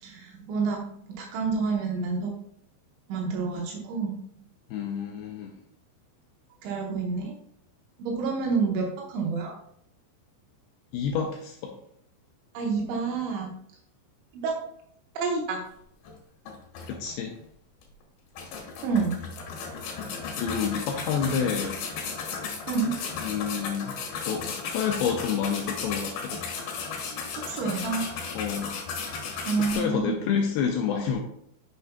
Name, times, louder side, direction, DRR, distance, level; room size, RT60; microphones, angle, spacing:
voice 1, 0.0-2.3 3.1-4.2 6.6-7.3 8.1-9.5 12.5-13.5 14.3-14.5 15.2-15.6 18.8-19.1 22.7-22.9 27.3-28.0 29.5-30.1, right 4 dB, 80° right, 0 dB, 3.3 m, -28 dB
voice 2, 4.7-5.5 10.9-11.7 16.8-17.3 20.4-21.8 23.2-24.0 24.3-26.4 28.3-28.7 29.7-31.2, left 7 dB, 85° left, 2 dB, 2.2 m, -29 dB
sound 1, 16.0-16.1 16.5-17.4 17.8-17.9 18.4-29.8, left 5 dB, 65° left, 2.7 m, -35 dB
9.1 x 6.8 x 2.2 m, 0.70 s
omnidirectional pair, 5.3 m